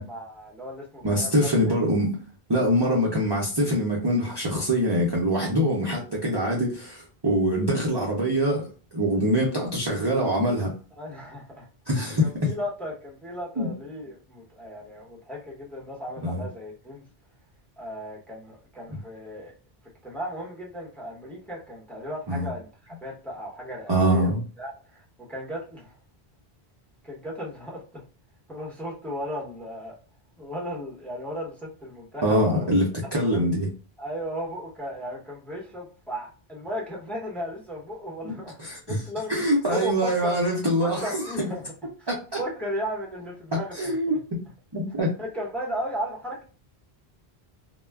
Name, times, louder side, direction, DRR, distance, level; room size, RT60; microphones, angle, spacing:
voice 1, 0.0-1.3 11.0-11.7 11.9-17.0 17.8-19.5 20.0-25.9 27.0-28.0 28.5-29.9 30.4-32.7 33.1-33.5 34.0-39.4 39.7-40.4 40.8-41.7 42.0-42.1 42.4-44.0 45.2-46.4, equal, ahead, 0.7 m, -35 dB
voice 2, 1.0-2.2 2.5-10.7 11.9-12.5 13.6-13.7 16.2-16.4 18.9-19.0 22.3-22.5 23.9-24.4 32.2-33.7 38.2-38.3 38.6-39.0 39.3-41.5 42.1-42.4 43.8-44.2 44.7-45.1, equal, 35° right, 0.5 m, -24 dB
2.2 x 2.1 x 3.3 m
omnidirectional pair, 1.0 m